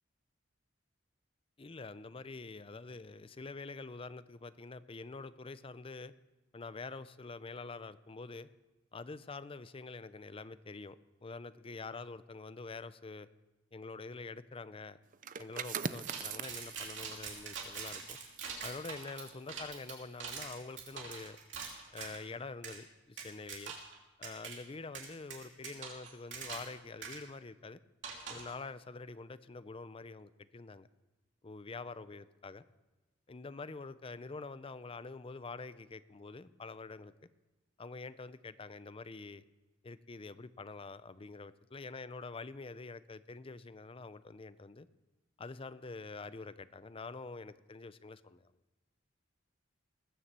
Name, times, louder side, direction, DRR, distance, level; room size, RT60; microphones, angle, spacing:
voice 1, 1.6-6.1 6.5-8.5 8.9-13.3 13.7-15.0 15.4-18.2 18.6-21.4 21.9-23.7 24.2-27.8 28.3-30.9 31.4-32.6 33.3-37.1 37.8-39.4 39.8-44.9 45.4-48.5, left 3 dB, 30° left, 15 dB, 0.5 m, -46 dB
sound 1, 15.1-20.6 21.0-21.2, right 6 dB, 45° right, 0.5 m, -44 dB
sound 2, 16.1-22.2 22.6-22.8 23.2-23.9 24.2-24.5 24.9-26.7 27.0-27.2 28.0-28.5, right 6 dB, 65° right, 3.0 m, -43 dB
19.5 x 7.1 x 7.5 m, 1.1 s
head